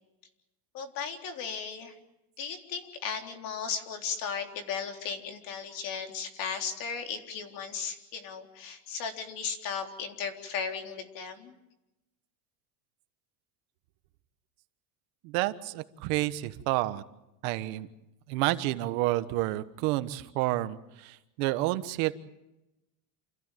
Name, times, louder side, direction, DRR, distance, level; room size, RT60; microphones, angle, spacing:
voice 1, 0.7-1.9 2.4-11.6, left 6 dB, 45° left, 4 dB, 3.9 m, -36 dB
voice 2, 15.2-17.0 17.4-17.9 18.3-22.1, right 17 dB, 65° right, 12 dB, 1.4 m, -29 dB
29.0 x 15.5 x 9.3 m, 0.91 s
cardioid pair, 160°, 47 cm